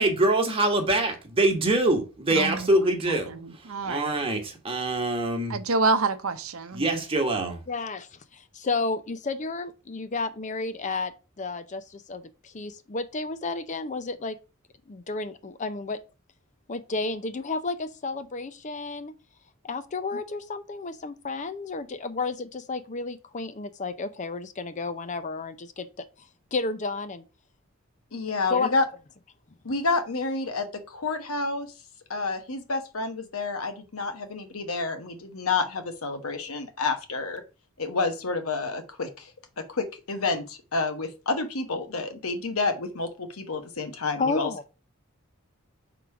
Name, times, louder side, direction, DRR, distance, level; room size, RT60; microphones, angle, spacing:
voice 1, 0.0-3.3 3.9-5.6 6.7-7.6, right 2 dB, 25° right, 1.3 m, -24 dB
voice 2, 2.3-4.1 5.5-6.8, right 3 dB, 80° right, 0.7 m, -28 dB
voice 3, 7.7-14.4 14.9-16.0 16.7-19.1 19.6-26.1 26.5-27.2 28.5-28.7 44.2-44.6, left 3 dB, 35° left, 0.5 m, -32 dB
voice 4, 28.1-28.8 29.6-31.7 32.1-37.4 37.8-39.3 39.6-44.5, left 3 dB, 85° left, 1.2 m, -29 dB
4.9 x 3.8 x 5.8 m
head